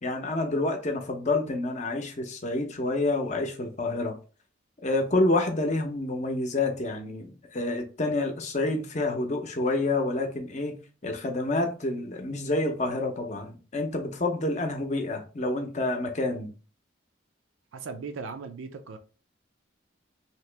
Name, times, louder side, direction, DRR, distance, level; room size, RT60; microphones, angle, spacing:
voice 1, 0.0-4.2 4.8-10.8 11.0-16.5, left 2 dB, 35° left, 0.6 m, -28 dB
voice 2, 17.7-19.0, right 4 dB, 85° right, 0.4 m, -38 dB
2.9 x 2.8 x 3.3 m
head